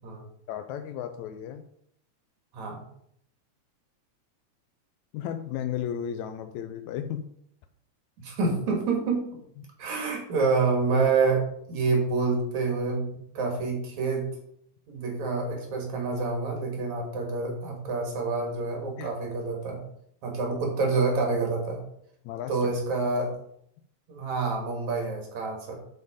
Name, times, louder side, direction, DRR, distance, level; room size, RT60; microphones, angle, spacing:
voice 1, 0.5-1.6 5.1-7.3 9.6-9.7 19.0-19.1 22.3-22.7, left 9 dB, 85° left, 8 dB, 1.9 m, -34 dB
voice 2, 8.2-9.3 9.8-11.4 11.7-14.3 14.9-19.8 20.2-21.8 22.5-23.3 24.1-25.7, right 4 dB, 75° right, 1 dB, 3.1 m, -27 dB
11.0 x 4.4 x 5.0 m, 0.70 s
omnidirectional pair, 3.3 m